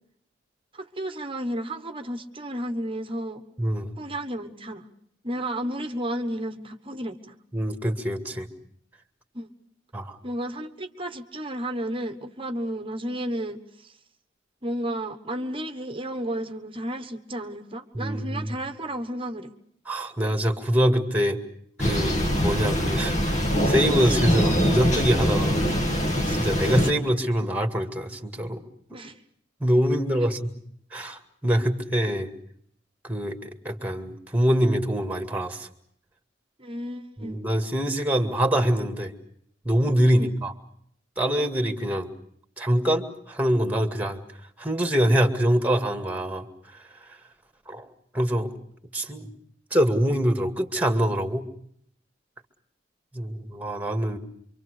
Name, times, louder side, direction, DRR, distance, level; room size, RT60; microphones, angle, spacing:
voice 1, 0.7-3.4 4.0-4.9 5.2-7.4 9.3-9.5 10.2-13.9 14.6-19.5 28.9-29.2 36.6-37.4 40.1-40.3, right 1 dB, 30° right, 8 dB, 1.3 m, -32 dB
voice 2, 3.6-3.9 7.5-8.5 9.9-10.2 17.9-18.5 19.9-21.4 21.8-25.6 26.3-28.6 28.9-29.0 29.6-30.5 30.9-32.3 33.0-35.7 37.2-39.1 39.6-40.5 41.2-42.1 42.6-44.2 44.6-46.5 46.7-47.2 47.7-47.9 48.1-48.5 48.9-49.3 49.7-51.4 53.1-54.2, equal, 10° right, 7 dB, 2.1 m, -24 dB
Thunder, 21.8-26.9, equal, 40° left, 1.9 m, -23 dB
26.5 x 25.0 x 6.6 m, 0.67 s
head